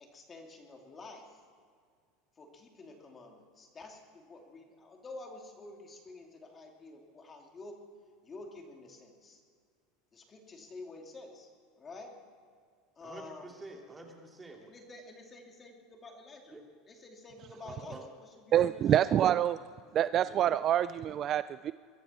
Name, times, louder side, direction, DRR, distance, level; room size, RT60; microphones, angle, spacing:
voice 1, 0.0-1.4 2.4-7.8 8.2-9.4 10.1-11.5 11.8-12.1 13.0-13.5 14.6-16.5 16.9-19.0, left 2 dB, 25° left, 2 dB, 2.7 m, -49 dB
voice 2, 13.0-14.7 16.5-16.6 17.6-18.1, right 2 dB, 15° right, 1 dB, 2.9 m, -48 dB
voice 3, 18.5-19.6 19.9-21.7, right 11 dB, 40° right, 14 dB, 0.3 m, -26 dB
22.5 x 13.5 x 4.4 m, 2.1 s
supercardioid pair, 115°, 0 cm